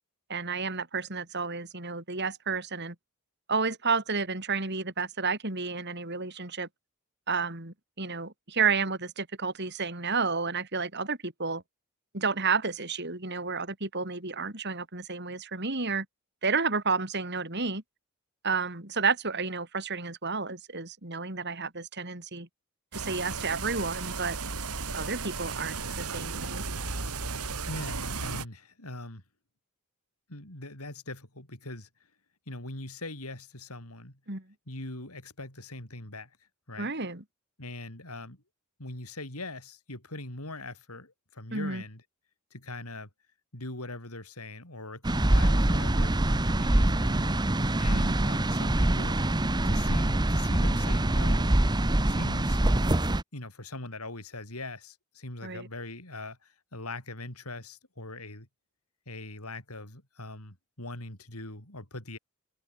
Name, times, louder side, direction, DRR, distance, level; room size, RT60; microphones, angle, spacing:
voice 1, 0.3-3.0 3.5-6.7 7.3-11.6 12.1-16.1 16.4-17.8 18.4-22.5 22.9-24.4 24.9-26.6 34.3-34.4 36.8-37.2 41.5-41.8 47.9-48.2 55.4-55.7, right 4 dB, 50° right, 4.2 m, -31 dB
sound 1, 22.9-28.5, right 4 dB, 90° right, 3.3 m, -35 dB
voice 2, 27.7-29.2 30.3-31.9 32.5-34.2 34.7-36.9 37.6-38.4 38.8-42.0 42.5-43.1 43.5-46.1 46.6-49.2 49.6-51.6 52.0-52.6 53.3-58.5 59.1-62.2, left 2 dB, 85° left, 7.3 m, -41 dB
sound 2, 45.0-53.2, right 1 dB, 20° right, 0.9 m, -24 dB
head